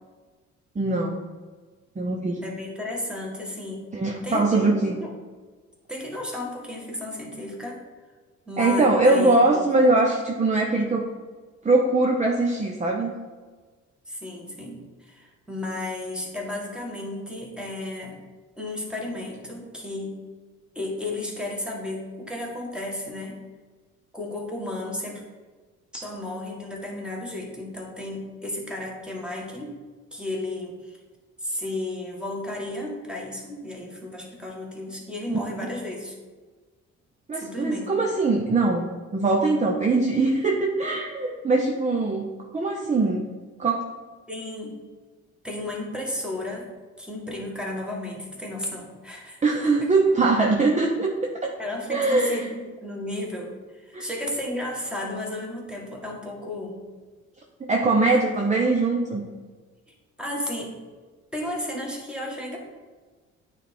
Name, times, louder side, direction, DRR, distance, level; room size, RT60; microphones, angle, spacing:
voice 1, 0.7-1.2 2.0-2.4 3.9-5.0 8.6-11.1 11.6-13.1 35.3-35.4 37.3-43.3 43.6-43.9 49.4-51.5 51.9-52.5 53.9-54.0 57.7-59.2, right 3 dB, 25° right, 0 dB, 0.8 m, -22 dB
voice 2, 2.4-3.8 4.2-4.7 5.0-5.1 5.9-7.8 8.5-9.7 14.1-18.2 18.6-20.1 20.8-23.4 24.1-25.2 25.9-29.7 30.1-31.0 31.4-36.2 37.4-37.9 44.3-44.7 45.4-46.7 47.0-49.9 51.6-56.9 57.9-58.3 60.2-60.7 61.3-62.6, left 1 dB, 5° right, -2 dB, 1.7 m, -33 dB
9.1 x 3.5 x 4.3 m, 1.4 s
cardioid pair, 90°, 30 cm